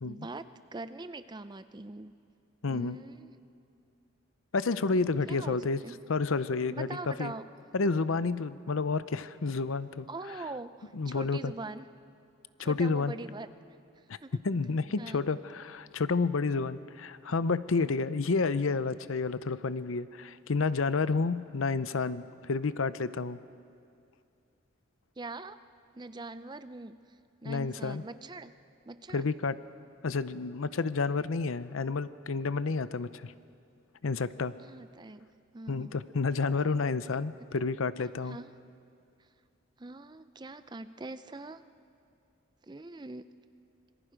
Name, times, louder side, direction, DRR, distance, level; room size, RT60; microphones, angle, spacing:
voice 1, 0.0-2.1 2.7-3.3 5.3-6.0 6.7-7.4 10.1-11.9 12.6-13.5 14.2-14.4 15.0-15.2 25.2-25.6 25.9-27.0 27.4-28.5 28.9-29.3 34.6-36.0 38.2-38.5 39.8-41.6 42.7-43.3, right 2 dB, 20° right, 12 dB, 0.5 m, -42 dB
voice 2, 2.6-3.0 4.5-5.8 6.1-6.9 7.2-7.3 7.7-10.1 10.9-11.5 12.6-13.1 14.4-23.4 27.4-28.0 29.1-29.6 30.0-33.3 34.0-34.5 35.7-38.4, left 4 dB, 75° left, 14 dB, 0.6 m, -30 dB
26.0 x 22.5 x 5.1 m, 2.5 s
head